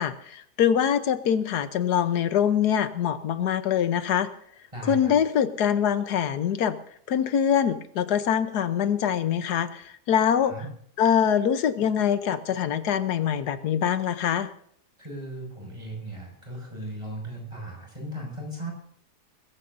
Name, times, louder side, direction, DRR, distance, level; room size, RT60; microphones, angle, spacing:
voice 1, 0.0-4.3 4.9-6.8 7.1-10.5 11.0-14.5, left 8 dB, 90° left, 11 dB, 1.5 m, -24 dB
voice 2, 4.7-5.1 10.5-10.7 15.0-18.7, right 1 dB, 20° right, 0 dB, 6.4 m, -37 dB
22.0 x 15.0 x 2.7 m, 0.65 s
omnidirectional pair, 1.7 m